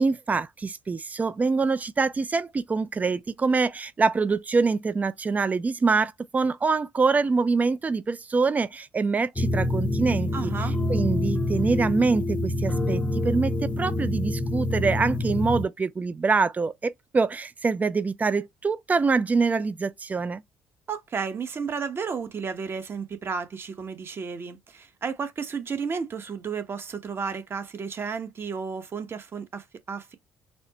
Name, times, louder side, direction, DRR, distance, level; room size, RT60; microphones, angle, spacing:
voice 1, 0.0-10.5 10.9-20.4, right 4 dB, 25° right, 0.5 m, -25 dB
sound 1, 9.4-15.7, left 1 dB, 20° left, 0.7 m, -26 dB
voice 2, 10.3-10.8 20.9-30.1, right 5 dB, 40° right, 0.9 m, -33 dB
4.2 x 2.1 x 2.8 m
hypercardioid pair, 60°, 6 cm